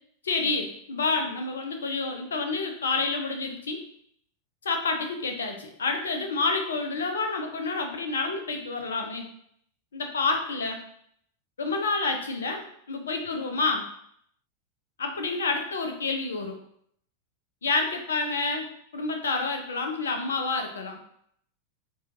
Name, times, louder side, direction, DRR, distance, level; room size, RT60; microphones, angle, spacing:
voice 1, 0.2-3.8 4.6-9.3 9.9-10.8 11.6-13.9 15.0-16.6 17.6-21.1, left 3 dB, 70° left, 5 dB, 0.5 m, -29 dB
4.3 x 2.3 x 2.7 m, 0.67 s
figure-of-eight pair, 90°, 0 cm